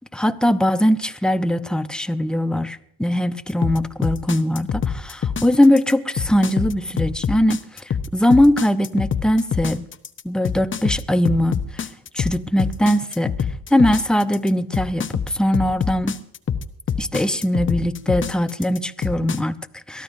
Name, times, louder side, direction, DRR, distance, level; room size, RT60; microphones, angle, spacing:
voice 1, 0.1-9.8 10.2-11.9 12.1-13.4 13.7-16.2 17.0-20.0, left 1 dB, ahead, 0.8 m, -20 dB
sound 1, 3.6-19.4, left 7 dB, 30° left, 0.8 m, -25 dB
22.5 x 14.0 x 2.7 m
supercardioid pair, 85°, 42 cm